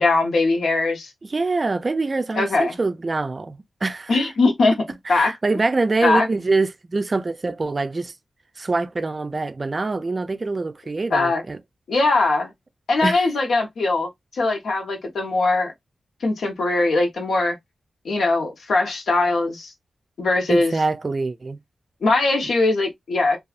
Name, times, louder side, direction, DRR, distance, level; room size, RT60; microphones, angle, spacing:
voice 1, 0.0-1.1 2.3-2.8 4.1-4.8 5.1-5.4 6.0-6.3 11.1-11.4 11.9-12.5 12.9-15.7 16.2-17.6 18.0-19.7 20.2-20.7 22.0-23.4, left 3 dB, 80° left, 0.9 m, -20 dB
voice 2, 1.3-4.3 5.1-8.1 8.6-11.6 13.0-13.3 20.5-21.6, right 3 dB, 30° right, 0.3 m, -24 dB
2.6 x 2.3 x 2.4 m
wide cardioid pair, 135°, 0 cm